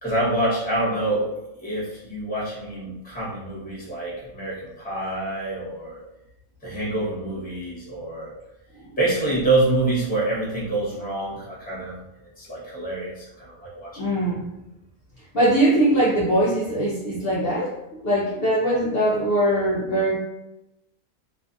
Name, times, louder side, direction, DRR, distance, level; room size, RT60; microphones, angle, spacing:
voice 1, 0.0-6.0 6.6-8.3 9.0-11.9 12.4-13.9, right 2 dB, 10° left, -7 dB, 0.8 m, -26 dB
voice 2, 14.0-14.5 15.3-17.8 18.0-20.2, right 1 dB, 55° left, -6 dB, 0.7 m, -21 dB
2.6 x 2.4 x 2.5 m, 0.91 s
omnidirectional pair, 1.4 m